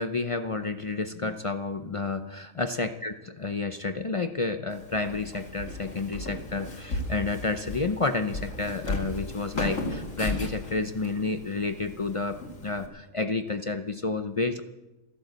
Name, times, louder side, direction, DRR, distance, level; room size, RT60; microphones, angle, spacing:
voice 1, 0.0-14.6, left 3 dB, 50° left, 9 dB, 0.4 m, -30 dB
Walk footsteps, 4.7-12.9, left 2 dB, 65° left, 2.5 m, -36 dB
14.5 x 11.5 x 7.9 m, 1.0 s
omnidirectional pair, 1.5 m